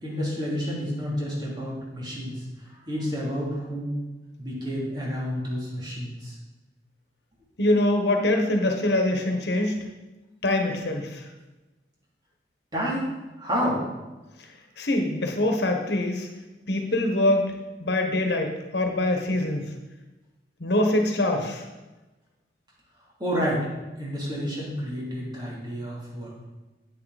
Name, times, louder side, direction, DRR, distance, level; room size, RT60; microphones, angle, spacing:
voice 1, 0.0-4.0 4.4-6.3 12.7-13.0 13.4-13.8 23.2-23.7 24.0-26.5, equal, 25° right, -5 dB, 3.2 m, -30 dB
voice 2, 7.6-9.8 10.4-11.2 14.4-14.5 14.8-16.3 16.7-17.4 17.8-19.7 20.6-21.6, left 1 dB, 70° left, 3 dB, 1.4 m, -24 dB
9.7 x 8.9 x 4.2 m, 1.1 s
head